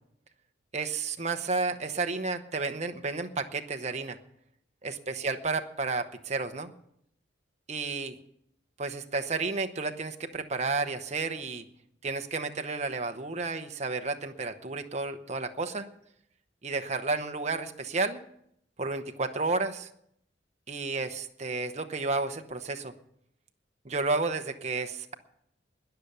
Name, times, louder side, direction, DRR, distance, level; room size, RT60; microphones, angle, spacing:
voice 1, 0.7-4.2 4.8-6.7 7.7-8.2 8.8-11.6 12.0-15.9 16.6-18.2 18.8-19.9 20.7-22.9 23.8-25.1, right 3 dB, 35° right, 7 dB, 0.9 m, -31 dB
20.5 x 6.9 x 6.7 m, 0.72 s
head